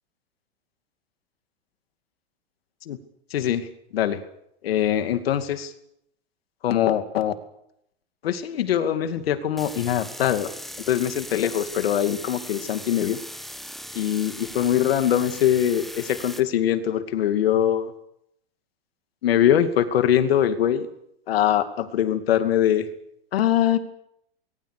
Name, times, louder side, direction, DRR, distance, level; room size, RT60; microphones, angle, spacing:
voice 1, 3.3-4.2 4.6-5.7 6.6-7.3 8.2-10.5 10.8-13.2 13.9-17.9 19.2-20.9 21.3-22.9 23.3-23.8, left 10 dB, 80° left, 9 dB, 2.5 m, -22 dB
sound 1, 9.6-16.4, equal, ahead, 1.5 m, -39 dB
25.0 x 21.5 x 6.7 m, 0.76 s
hypercardioid pair, 120°, 30 cm